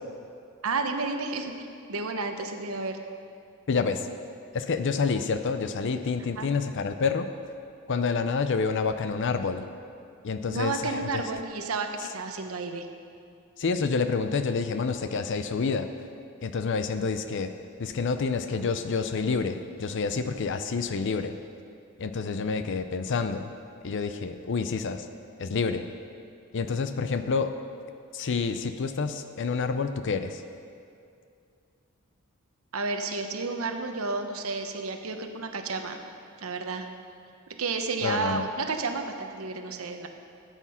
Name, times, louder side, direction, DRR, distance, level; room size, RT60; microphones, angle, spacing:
voice 1, 0.6-1.5 1.9-3.0 6.4-6.5 10.4-12.9 32.7-36.0 36.4-36.9 37.6-40.1, right 3 dB, 80° right, 5 dB, 1.0 m, -31 dB
voice 2, 3.7-4.1 4.5-7.3 7.9-9.6 10.2-11.2 12.0-12.1 13.6-15.9 16.4-17.5 17.8-21.3 22.0-23.5 23.8-25.1 25.4-25.9 26.5-27.5 28.1-30.4 38.0-38.5, left 4 dB, 60° left, 9 dB, 0.5 m, -28 dB
13.5 x 8.3 x 5.7 m, 2.4 s
head